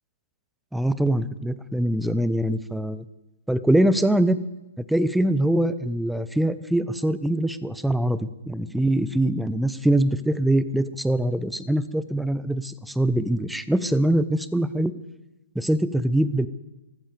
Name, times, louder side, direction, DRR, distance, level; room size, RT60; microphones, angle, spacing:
voice 1, 0.7-3.0 3.5-4.4 4.8-14.9 15.5-16.5, right 1 dB, ahead, 13 dB, 0.7 m, -23 dB
14.5 x 13.0 x 6.9 m, 1.0 s
figure-of-eight pair, 125°, 0 cm